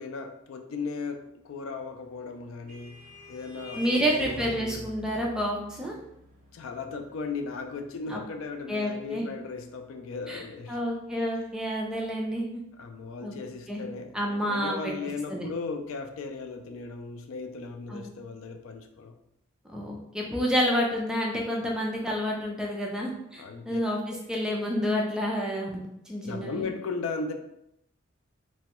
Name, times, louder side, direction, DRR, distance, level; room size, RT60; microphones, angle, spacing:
voice 1, 0.0-4.9 6.5-10.8 12.8-19.2 23.4-23.8 24.1-24.2 26.2-27.3, left 4 dB, 80° left, 5 dB, 0.3 m, -37 dB
Vehicle horn car horn honking, 2.1-11.0, right 2 dB, 40° right, 0.8 m, -44 dB
voice 2, 3.8-6.0 8.1-8.2 8.7-9.3 10.3-10.4 10.7-12.6 13.2-13.3 13.7-13.8 14.1-14.9 15.3-15.5 17.9-18.0 19.7-26.7, equal, 5° right, -2 dB, 0.4 m, -29 dB
3.0 x 2.2 x 2.9 m, 0.78 s
head